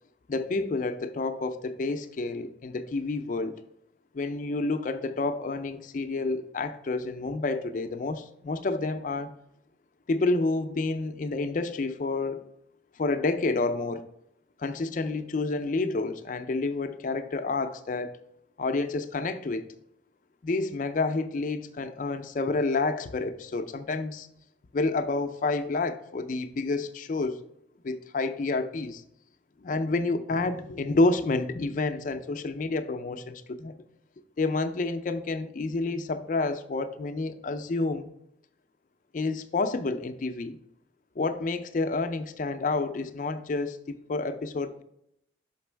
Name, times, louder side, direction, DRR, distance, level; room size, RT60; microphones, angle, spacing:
voice 1, 0.3-3.6 4.1-9.3 10.1-12.4 13.0-14.1 14.6-18.2 18.6-19.7 20.4-24.3 24.7-27.4 27.8-29.0 29.6-33.7 34.4-38.1 39.1-40.6 41.2-44.8, left 3 dB, 40° left, 0.4 m, -29 dB
6.0 x 5.2 x 3.3 m
head